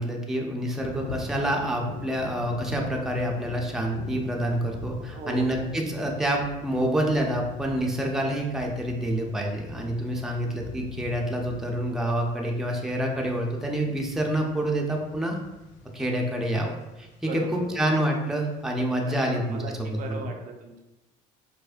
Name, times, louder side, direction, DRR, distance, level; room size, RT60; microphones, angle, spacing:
voice 1, 0.0-15.4 15.9-16.7 17.0-17.1 17.3-19.6 20.1-20.3, right 1 dB, ahead, 0 dB, 0.5 m, -27 dB
sound 1, 0.8-20.1, left 3 dB, 70° left, 0.5 m, -43 dB
voice 2, 5.0-5.6 17.2-17.9 19.0-20.8, right 3 dB, 50° right, 2 dB, 0.5 m, -38 dB
4.6 x 2.1 x 2.5 m, 0.97 s
supercardioid pair, 85°, 18 cm